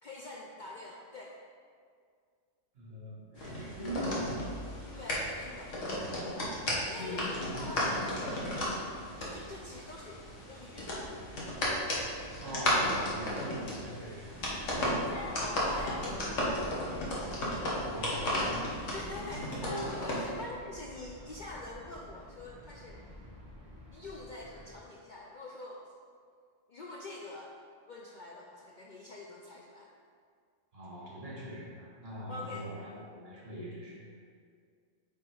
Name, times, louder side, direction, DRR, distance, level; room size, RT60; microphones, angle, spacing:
voice 1, 0.0-1.4 4.9-5.8 6.9-10.2 10.5-11.1 15.1-16.1 18.9-23.0 23.9-25.9 26.7-27.5 27.9-29.9 32.3-32.7, left 2 dB, 55° left, -2 dB, 0.6 m, -45 dB
voice 2, 2.7-4.6 5.6-5.9 6.9-8.0 12.4-14.3 14.7-15.1 15.4-16.0 17.8-18.7 19.3-20.4 30.7-34.1, equal, 55° right, -5 dB, 1.8 m, -42 dB
sound 1, 3.3-20.2, left 1 dB, 80° left, 1.6 m, -34 dB
sound 2, 14.3-24.8, equal, 15° right, 1.4 m, -49 dB
8.1 x 3.4 x 4.6 m, 2.1 s
omnidirectional pair, 1.3 m